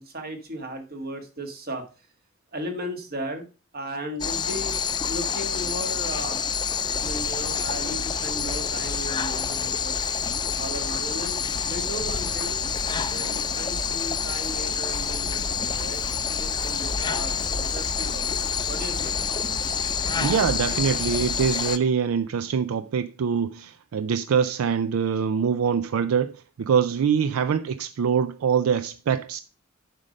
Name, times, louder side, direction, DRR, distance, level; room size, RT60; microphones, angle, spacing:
voice 1, 0.0-2.1 2.5-3.5 3.7-4.8 5.1-6.4 7.0-10.1 10.6-11.4 11.7-12.6 13.0-16.0 16.3-18.2 18.7-19.1, right 1 dB, 45° right, 1.7 m, -36 dB
sound 1, 4.2-21.8, left 6 dB, 20° left, 0.4 m, -28 dB
sound 2, 6.9-21.5, left 1 dB, 75° left, 0.9 m, -38 dB
voice 2, 20.2-29.4, right 7 dB, 75° right, 0.4 m, -24 dB
7.5 x 5.2 x 5.1 m
head